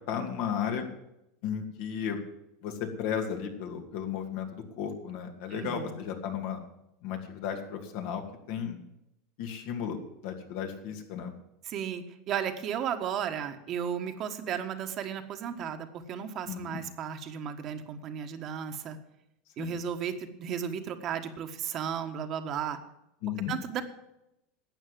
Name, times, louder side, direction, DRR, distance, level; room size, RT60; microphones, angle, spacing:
voice 1, 0.1-0.9 1.4-2.2 2.6-6.6 7.0-8.2 8.5-8.8 9.4-10.0 10.2-11.3 16.5-16.8 19.6-19.8 23.2-23.5, left 8 dB, 70° left, 4 dB, 2.5 m, -34 dB
voice 2, 5.5-6.0 11.6-19.0 19.6-22.8 23.5-23.8, right 8 dB, 45° right, 6 dB, 1.5 m, -34 dB
12.0 x 8.4 x 7.6 m, 0.85 s
supercardioid pair, 115°, 0 cm